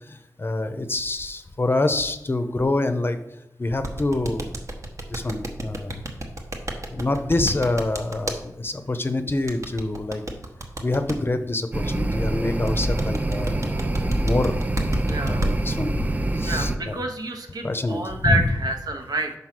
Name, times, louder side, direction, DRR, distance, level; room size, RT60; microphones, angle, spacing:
voice 1, 0.1-3.2 3.6-4.5 5.1-6.0 6.9-10.2 10.8-14.6 15.3-17.0 17.6-18.4, left 2 dB, 35° left, 9 dB, 0.6 m, -26 dB
sound 1, 3.8-8.4 9.5-11.1 12.7-15.5, right 1 dB, 50° right, 1.0 m, -30 dB
sound 2, 11.7-16.8, right 1 dB, 25° right, 0.6 m, -25 dB
voice 2, 15.1-15.5 16.4-19.3, right 2 dB, 70° right, 3 dB, 1.1 m, -28 dB
5.5 x 4.7 x 5.9 m, 0.88 s
wide cardioid pair, 70°, 7 cm